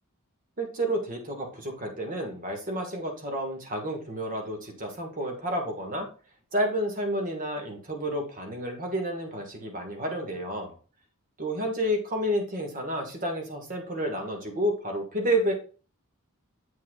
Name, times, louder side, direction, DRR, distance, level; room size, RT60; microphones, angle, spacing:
voice 1, 0.6-6.1 6.5-10.7 11.4-15.5, right 1 dB, 40° right, 3 dB, 1.4 m, -30 dB
7.9 x 5.7 x 2.3 m, 0.37 s
head